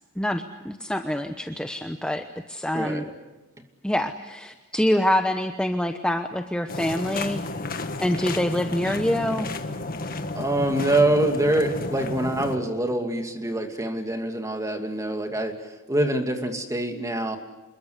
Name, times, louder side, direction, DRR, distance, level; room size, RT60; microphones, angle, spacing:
voice 1, 0.2-3.0 3.8-7.4 8.0-9.5, left 1 dB, 5° left, 6 dB, 1.0 m, -26 dB
voice 2, 2.7-3.1 10.3-15.5 15.9-17.4, right 1 dB, 15° right, 5 dB, 2.6 m, -25 dB
sound 1, 6.7-12.6, left 2 dB, 45° left, 1.7 m, -32 dB
27.5 x 22.0 x 8.2 m, 1.1 s
head